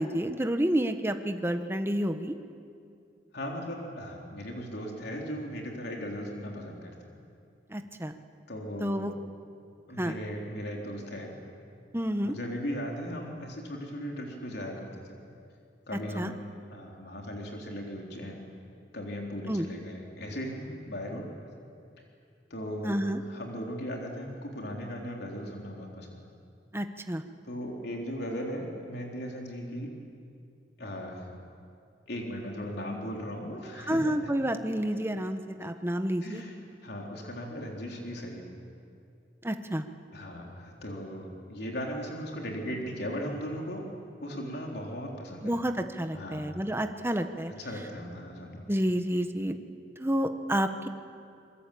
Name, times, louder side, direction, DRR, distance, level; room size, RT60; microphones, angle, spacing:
voice 1, 0.0-2.3 7.7-8.2 8.8-9.1 10.0-10.2 11.9-12.3 16.2-16.3 19.5-19.7 22.8-23.2 26.7-27.2 33.9-36.4 39.4-39.8 45.4-47.5 48.7-49.6 50.0-50.9, equal, 15° right, 7 dB, 1.1 m, -29 dB
voice 2, 3.3-7.2 8.5-9.1 9.9-11.3 12.2-15.2 15.9-18.4 18.9-21.3 22.5-26.2 27.4-29.9 30.8-31.3 32.1-34.2 36.2-36.6 36.8-38.4 40.1-43.9 44.2-45.5 46.1-46.5 47.6-48.6, equal, 65° left, 0 dB, 3.8 m, -37 dB
26.5 x 22.5 x 8.6 m, 2.4 s
head